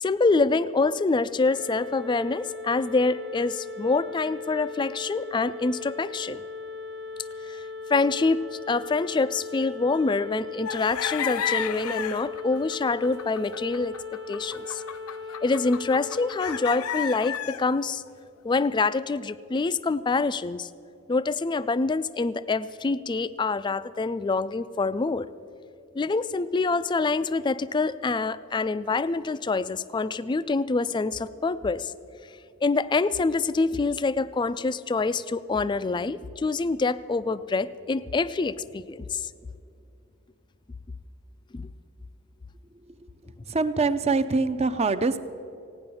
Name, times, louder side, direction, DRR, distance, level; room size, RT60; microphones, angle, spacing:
voice 1, 0.0-6.4 7.5-7.6 7.9-13.9 14.3-14.8 15.4-18.0 18.4-20.7 21.1-25.3 25.9-31.9 32.6-39.3 41.5-41.7, left 3 dB, 20° left, 16 dB, 0.3 m, -26 dB
sound 1, 1.5-16.7, left 3 dB, 45° right, 1.0 m, -38 dB
sound 2, 10.7-17.6, left 8 dB, 90° left, 0.5 m, -32 dB
voice 2, 43.5-45.2, right 3 dB, 30° right, 11 dB, 0.5 m, -24 dB
16.5 x 9.7 x 6.9 m, 2.6 s
head